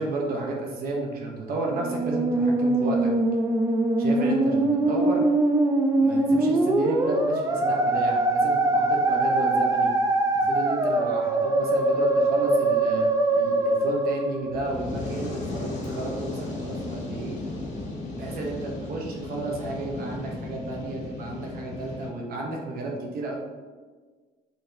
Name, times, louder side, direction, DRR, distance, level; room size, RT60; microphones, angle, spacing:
voice 1, 0.0-3.1 4.0-5.2 6.0-9.9 10.3-13.1 13.3-17.4 18.2-23.4, right 2 dB, 60° right, 0 dB, 0.8 m, -32 dB
Musical instrument, 1.7-15.1, right 2 dB, 20° right, 0.4 m, -23 dB
Fire, 14.4-22.1, left 2 dB, 45° left, 1.4 m, -35 dB
3.9 x 3.4 x 2.6 m, 1.4 s
cardioid pair, 110°, 17 cm